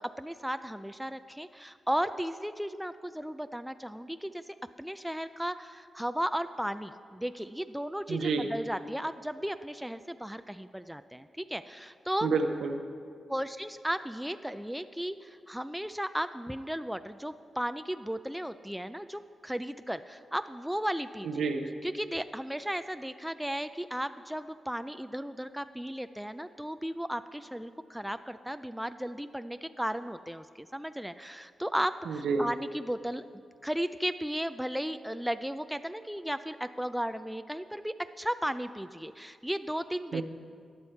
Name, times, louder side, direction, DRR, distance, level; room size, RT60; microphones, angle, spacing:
voice 1, 0.0-12.3 13.3-21.3 21.8-33.2 33.6-40.2, equal, 5° right, 10 dB, 0.3 m, -35 dB
voice 2, 8.1-8.5 12.2-12.8 21.2-21.6 32.1-32.5 40.1-40.2, right 4 dB, 85° right, 6 dB, 0.7 m, -29 dB
14.0 x 9.6 x 4.4 m, 2.2 s
cardioid pair, 75°, 0 cm